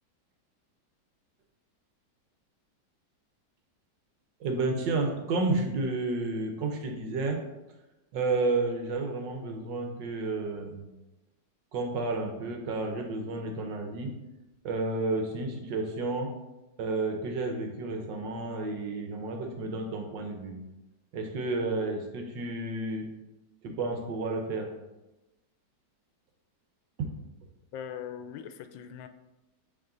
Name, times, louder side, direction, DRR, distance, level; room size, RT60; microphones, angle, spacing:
voice 1, 4.4-7.4 8.1-10.8 11.7-14.2 14.6-16.3 16.8-20.6 21.1-23.1 23.6-24.7 27.0-27.1, right 3 dB, 75° right, 3 dB, 1.6 m, -31 dB
voice 2, 27.7-29.1, left 8 dB, 90° left, 9 dB, 1.3 m, -40 dB
8.5 x 3.6 x 3.8 m, 1.0 s
omnidirectional pair, 2.0 m